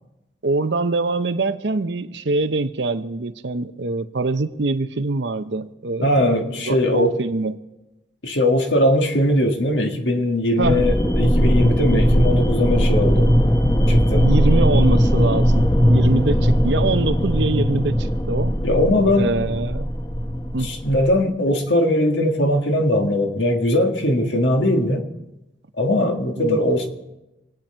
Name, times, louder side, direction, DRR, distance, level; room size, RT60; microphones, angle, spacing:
voice 1, 0.4-6.3 6.6-7.6 10.6-10.9 13.6-13.8 14.2-18.5 19.2-19.8 20.5-20.7 26.4-26.6, right 3 dB, 75° right, 10 dB, 0.7 m, -24 dB
voice 2, 6.0-7.2 8.2-13.3 13.9-14.3 18.6-19.3 20.6-25.0 25.8-26.9, left 1 dB, 80° left, 3 dB, 1.8 m, -20 dB
sound 1, 10.6-21.2, equal, 20° left, 0.9 m, -19 dB
26.0 x 9.0 x 4.5 m, 0.95 s
head